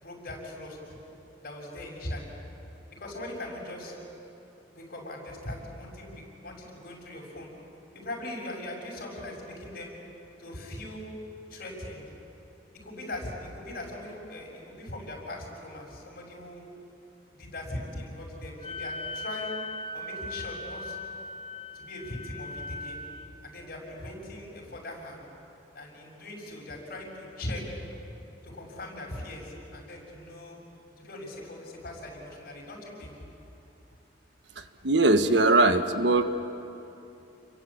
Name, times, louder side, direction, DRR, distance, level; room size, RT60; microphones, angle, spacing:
voice 1, 0.0-0.9 1.4-2.3 2.9-4.0 4.7-7.5 7.9-9.9 10.4-11.1 11.5-12.1 12.8-16.6 17.3-19.6 19.9-21.0 21.7-23.0 23.4-25.2 25.7-27.7 28.4-30.6 31.0-33.2, left 1 dB, 55° left, -1 dB, 6.8 m, -40 dB
Wind instrument woodwind instrument, 18.6-23.3, left 2 dB, 30° left, 1.0 m, -39 dB
voice 2, 34.8-36.2, right 2 dB, 80° right, 8 dB, 1.4 m, -20 dB
29.5 x 22.5 x 8.7 m, 2.9 s
head